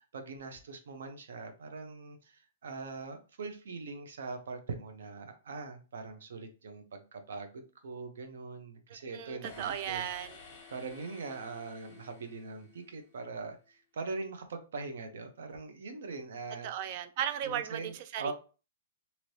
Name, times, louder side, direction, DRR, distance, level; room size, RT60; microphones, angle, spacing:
voice 1, 0.1-10.0 10.7-16.7 17.4-18.3, right 4 dB, 75° right, 0.7 m, -42 dB
voice 2, 8.9-10.4 16.6-18.3, right 10 dB, 40° right, 0.3 m, -36 dB
sound 1, 9.4-13.3, left 4 dB, 25° left, 1.0 m, -53 dB
3.1 x 2.8 x 2.7 m
hypercardioid pair, 160°, 0 cm